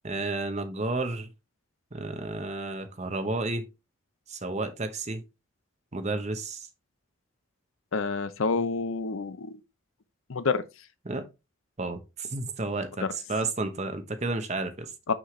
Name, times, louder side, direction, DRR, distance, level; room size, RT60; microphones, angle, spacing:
voice 1, 0.0-1.3 1.9-3.6 4.3-5.2 5.9-6.7 11.0-11.3 11.8-14.9, right 2 dB, 35° right, 0.9 m, -31 dB
voice 2, 7.9-9.6 10.3-10.6 15.1-15.2, left 4 dB, 75° left, 0.7 m, -28 dB
6.1 x 5.6 x 3.2 m
head